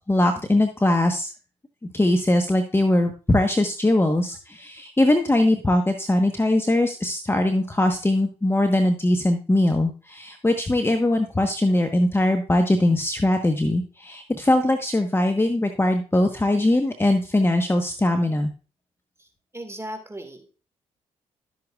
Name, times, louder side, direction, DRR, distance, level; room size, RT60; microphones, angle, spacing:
voice 1, 0.1-1.3 1.9-18.5, left 1 dB, 15° left, 5 dB, 1.2 m, -21 dB
voice 2, 19.5-20.5, right 1 dB, 20° right, 7 dB, 1.9 m, -36 dB
12.0 x 7.9 x 2.4 m, 0.34 s
hypercardioid pair, 45°, 15 cm